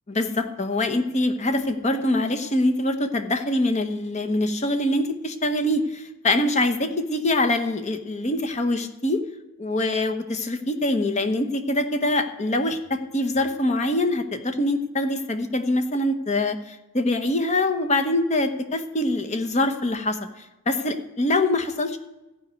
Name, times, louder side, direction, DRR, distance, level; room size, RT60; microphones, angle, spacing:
voice 1, 0.1-9.2 9.6-22.0, left 1 dB, 30° left, 8 dB, 0.9 m, -24 dB
14.5 x 5.1 x 9.3 m, 0.99 s
head